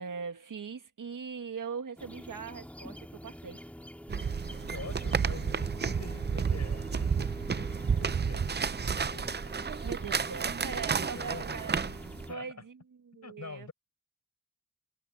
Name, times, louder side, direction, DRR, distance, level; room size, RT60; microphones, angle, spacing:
voice 1, 0.0-3.6 8.1-8.2 9.8-11.9 12.3-13.7, right 6 dB, 60° right, 1.7 m, -41 dB
sound 1, 2.0-12.3, equal, 5° left, 4.0 m, -46 dB
sound 2, 4.1-12.3, right 6 dB, 30° right, 0.5 m, -31 dB
voice 2, 4.5-9.4 10.9-11.6 12.3-12.6 13.2-13.7, left 5 dB, 50° left, 5.0 m, -46 dB
wide cardioid pair, 135°, 36 cm